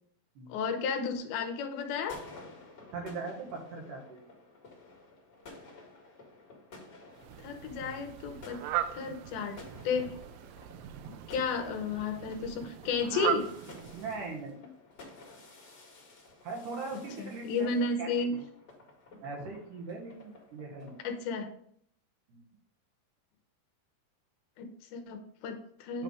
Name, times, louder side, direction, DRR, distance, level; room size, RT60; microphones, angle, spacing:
voice 1, 0.5-2.2 7.4-8.6 8.9-9.6 9.8-10.1 11.3-13.5 17.2-18.3 21.0-21.5 24.6-26.0, left 4 dB, 75° left, 6 dB, 2.4 m, -33 dB
sound 1, 1.8-21.2, left 3 dB, 40° left, 1.6 m, -53 dB
voice 2, 2.9-4.2 13.9-14.7 16.4-18.4 19.2-21.0 22.3-22.4 25.9-26.0, right 3 dB, 65° right, -1 dB, 2.3 m, -40 dB
Fowl, 7.2-14.5, right 11 dB, 85° right, 2.5 m, -39 dB
9.3 x 3.3 x 4.9 m, 0.65 s
omnidirectional pair, 4.8 m